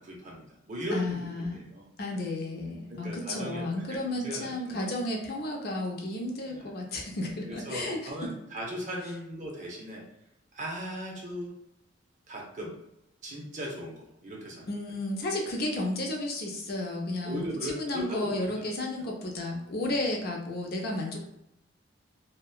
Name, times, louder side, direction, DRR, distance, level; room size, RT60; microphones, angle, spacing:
voice 1, 0.0-1.8 2.1-2.2 2.9-4.8 6.5-6.7 7.4-10.0 10.5-11.5 12.3-12.7 13.2-14.7 17.2-18.6 19.0-19.1 19.8-19.9, equal, 40° right, -2 dB, 0.6 m, -38 dB
voice 2, 0.9-1.6 2.0-8.3 14.7-21.2, left 1 dB, 50° left, 0 dB, 0.5 m, -33 dB
2.8 x 2.2 x 2.3 m, 0.83 s
head